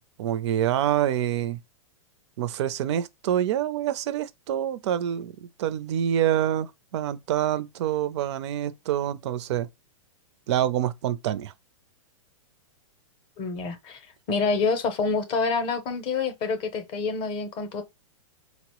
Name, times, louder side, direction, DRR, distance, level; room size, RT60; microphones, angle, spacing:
voice 1, 0.2-1.6 2.4-9.7 10.5-11.5, right 11 dB, 55° right, 0.4 m, -26 dB
voice 2, 13.4-14.0 14.3-17.8, left 4 dB, 30° left, 0.6 m, -27 dB
4.1 x 2.0 x 2.9 m
hypercardioid pair, 140°, 17 cm